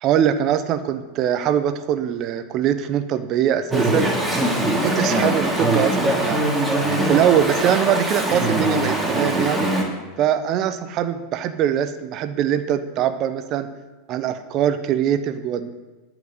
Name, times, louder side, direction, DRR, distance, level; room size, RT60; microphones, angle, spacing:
voice 1, 0.0-4.1 4.8-6.5 7.1-9.7 10.2-13.7 14.1-15.7, right 9 dB, 40° right, 10 dB, 0.9 m, -22 dB
Chatter / Stream, 3.7-9.8, right 1 dB, 5° right, 2.8 m, -21 dB
12.0 x 5.1 x 8.0 m, 1.2 s
figure-of-eight pair, 85°, 0 cm